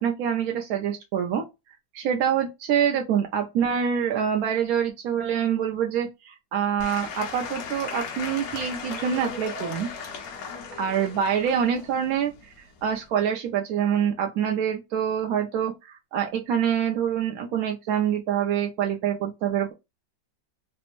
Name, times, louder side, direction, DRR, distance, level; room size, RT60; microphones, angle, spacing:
voice 1, 0.0-1.4 1.9-9.9 10.8-19.7, right 8 dB, 70° right, 0.9 m, -26 dB
Applause / Crowd, 6.8-13.1, left 5 dB, 60° left, 1.1 m, -37 dB
3.3 x 2.0 x 2.9 m
omnidirectional pair, 1.9 m